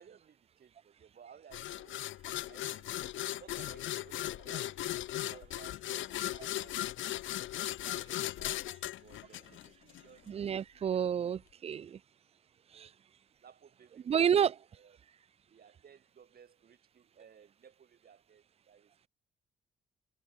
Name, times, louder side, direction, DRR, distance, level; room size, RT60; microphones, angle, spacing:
voice 1, 0.0-2.0 2.5-2.9 3.4-7.2 7.8-8.7 9.0-11.2 12.7-12.9 13.4-15.0 15.5-18.9, right 7 dB, 50° right, 4.9 m, -59 dB
sound 1, 1.5-10.0, left 14 dB, 75° left, 1.0 m, -38 dB
voice 2, 10.3-12.0 12.7-12.9 14.1-14.5, right 8 dB, 30° right, 0.4 m, -30 dB
cardioid pair, 90°, 20 cm